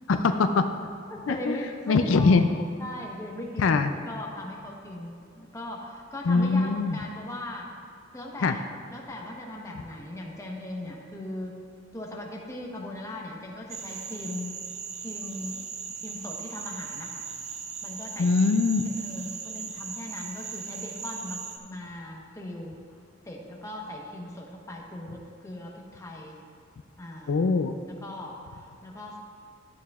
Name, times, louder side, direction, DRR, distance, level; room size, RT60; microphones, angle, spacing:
voice 1, 0.1-0.7 1.3-1.6 1.9-2.5 3.6-3.9 6.3-7.0 8.4-8.6 18.2-18.8 27.3-27.7, left 4 dB, 80° left, 8 dB, 0.4 m, -22 dB
voice 2, 1.3-2.4 2.8-7.7 8.1-11.6 11.9-14.6 15.0-15.6 16.0-17.3 17.8-18.4 19.0-23.0 23.2-26.4 27.0-27.4 27.9-29.2, left 1 dB, 15° left, -1 dB, 1.0 m, -39 dB
sound 1, 13.7-21.6, right 6 dB, 35° right, 0.6 m, -38 dB
12.0 x 8.8 x 2.4 m, 2.3 s
head